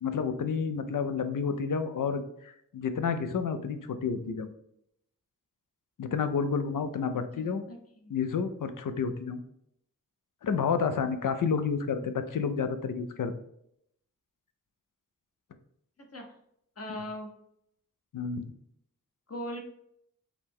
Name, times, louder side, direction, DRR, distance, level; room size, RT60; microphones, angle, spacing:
voice 1, 0.0-4.5 6.0-7.6 8.1-9.4 10.4-13.3 18.1-18.5, left 6 dB, 75° left, 9 dB, 0.5 m, -30 dB
voice 2, 7.3-8.1 16.1-16.2 16.8-17.3 19.3-19.6, left 1 dB, 45° left, 3 dB, 0.9 m, -39 dB
4.8 x 2.2 x 3.5 m, 0.74 s
cardioid pair, 45°, 32 cm